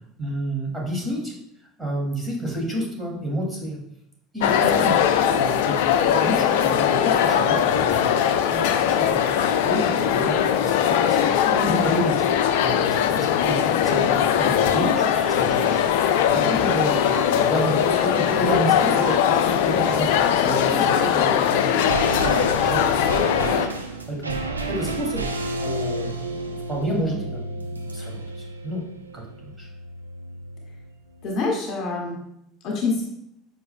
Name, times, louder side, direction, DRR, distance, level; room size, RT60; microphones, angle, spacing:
voice 1, 0.2-1.3 1.8-3.8 4.3-5.7 6.0-12.3 12.6-24.3 24.7-25.2 25.6-28.8 29.1-29.7, right 1 dB, 10° right, -3 dB, 2.5 m, -30 dB
sound 1, 4.4-23.7, left 9 dB, 60° left, 0.4 m, -20 dB
voice 2, 11.5-12.0 31.2-32.2 32.6-33.0, left 3 dB, 45° left, 0 dB, 1.4 m, -26 dB
sound 2, 15.1-15.3 15.6-15.7 16.0-17.2 17.5-17.6 17.9-19.2 19.5-19.6 19.8-21.1 21.4-21.5 21.8-22.7, right 5 dB, 40° right, 1.3 m, -38 dB
sound 3, 21.6-31.0 31.2-31.3, right 2 dB, 85° right, 0.5 m, -31 dB
8.4 x 5.1 x 2.2 m, 0.76 s
figure-of-eight pair, 70°, 0 cm